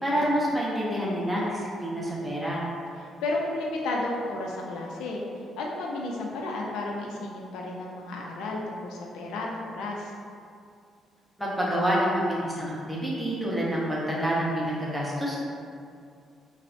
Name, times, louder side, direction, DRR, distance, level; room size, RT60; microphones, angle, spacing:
voice 1, 0.0-2.6 11.4-15.4, equal, 5° right, -6 dB, 0.7 m, -27 dB
voice 2, 3.0-10.1, left 2 dB, 90° left, -1 dB, 0.4 m, -32 dB
3.2 x 2.0 x 2.5 m, 2.3 s
cardioid pair, 90°, 0 cm